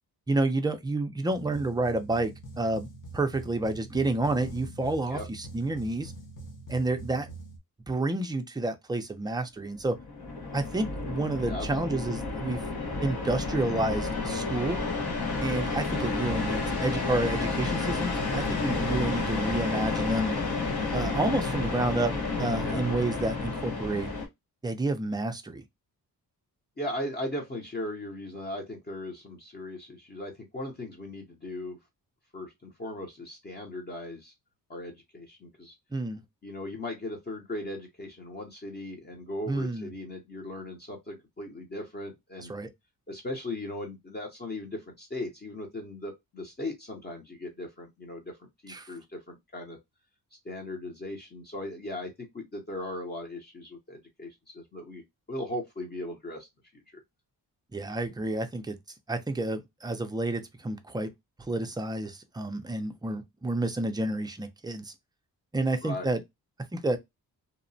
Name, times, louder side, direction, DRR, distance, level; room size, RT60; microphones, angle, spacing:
voice 1, 0.3-2.9 3.1-6.1 6.7-7.3 7.9-10.0 10.5-12.6 13.0-14.8 15.4-20.4 20.9-24.1 24.6-25.6 35.9-36.2 39.5-39.9 42.5-42.7 48.7-48.9 57.7-58.8 59.1-61.1 61.5-64.9 65.5-66.2 66.7-67.0, right 2 dB, 10° right, 0.3 m, -30 dB
sound 1, 1.3-7.6, right 2 dB, 55° left, 0.8 m, -44 dB
sound 2, 9.8-24.3, left 3 dB, 75° left, 1.1 m, -31 dB
voice 2, 11.4-12.0 22.6-22.8 26.8-31.8 32.3-34.3 34.7-35.7 36.4-42.5 43.1-49.8 50.4-55.0 55.3-56.5 56.7-57.0 65.8-66.1, left 1 dB, 25° left, 0.6 m, -38 dB
2.8 x 2.1 x 2.5 m
wide cardioid pair, 135°, 38 cm